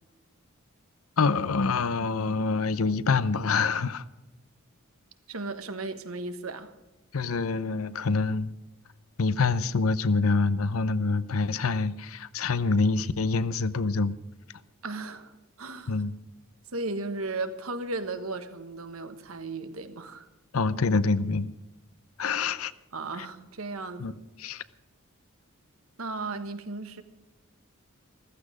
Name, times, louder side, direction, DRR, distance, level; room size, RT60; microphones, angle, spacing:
voice 1, 1.2-4.0 7.1-8.5 9.2-14.1 15.9-16.1 20.5-21.5 22.2-22.7 24.0-24.1 24.4-24.6, left 4 dB, 90° left, 16 dB, 0.7 m, -26 dB
voice 2, 5.3-6.7 14.8-16.0 16.7-20.3 22.9-24.2 26.0-27.0, right 3 dB, 85° right, 9 dB, 1.4 m, -35 dB
15.0 x 14.5 x 5.0 m, 1.1 s
head